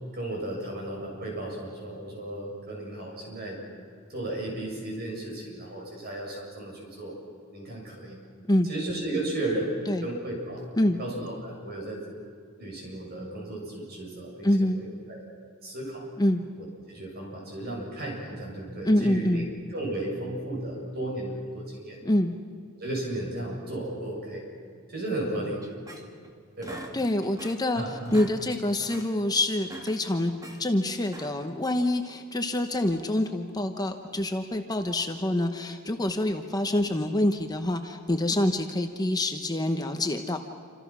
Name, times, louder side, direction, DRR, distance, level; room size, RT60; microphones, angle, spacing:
voice 1, 0.1-3.6 4.1-7.2 7.5-8.3 8.6-9.7 10.0-10.6 11.0-12.0 12.6-15.2 15.6-16.1 16.6-19.4 19.7-22.0 22.7-24.4 24.9-25.6 26.6-26.8 27.7-28.1, right 1 dB, 45° right, -1 dB, 7.9 m, -34 dB
voice 2, 14.4-14.8 16.2-16.4 18.8-19.5 22.0-22.3 26.9-30.3 30.6-40.4, left 1 dB, 20° left, 6 dB, 1.0 m, -26 dB
sound 1, 25.6-26.3 26.6-27.7 28.0-28.4 28.7-29.1 29.5-30.6 31.0-31.5, right 1 dB, 15° right, 2.2 m, -44 dB
28.0 x 26.5 x 6.2 m, 2.2 s
head